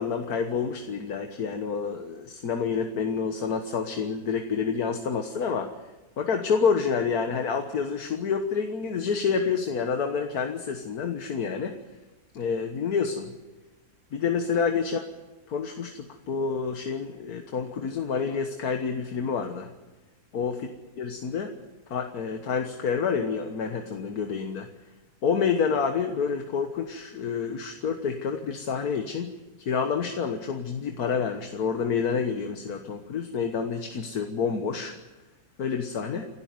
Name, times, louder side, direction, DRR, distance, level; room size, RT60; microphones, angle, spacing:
voice 1, 0.0-5.7 6.2-11.7 12.3-13.3 14.1-15.0 15.5-19.7 20.3-20.6 21.0-21.5 21.9-24.7 25.2-29.3 29.7-34.9 35.6-36.3, left 6 dB, 80° left, 5 dB, 1.8 m, -28 dB
28.0 x 12.5 x 9.4 m, 1.1 s
omnidirectional pair, 1.6 m